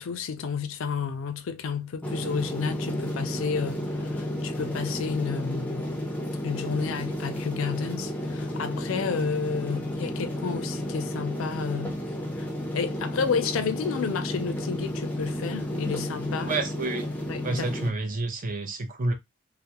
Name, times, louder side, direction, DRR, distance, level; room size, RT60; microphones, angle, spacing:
voice 1, 0.0-5.9 6.3-12.0 12.4-12.5 12.7-16.5 17.3-17.7, left 6 dB, 70° left, 0.4 m, -31 dB
sound 1, 2.0-17.9, left 1 dB, 5° left, 0.5 m, -32 dB
voice 2, 16.4-17.1 17.4-19.1, right 2 dB, 40° right, 0.5 m, -29 dB
2.3 x 2.0 x 2.8 m
head